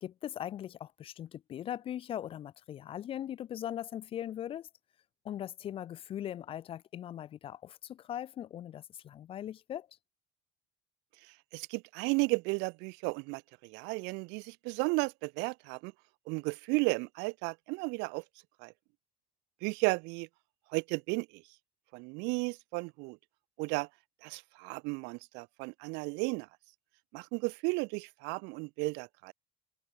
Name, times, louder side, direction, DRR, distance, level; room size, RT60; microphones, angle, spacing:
voice 1, 0.0-4.7 5.2-9.9, left 11 dB, 30° left, 0.5 m, -40 dB
voice 2, 11.5-15.9 16.3-18.2 18.6-18.7 19.6-20.3 20.7-21.4 21.9-23.2 23.6-23.9 24.2-26.5 27.1-29.3, right 28 dB, 80° right, 0.6 m, -34 dB
cardioid pair, 170°, 18 cm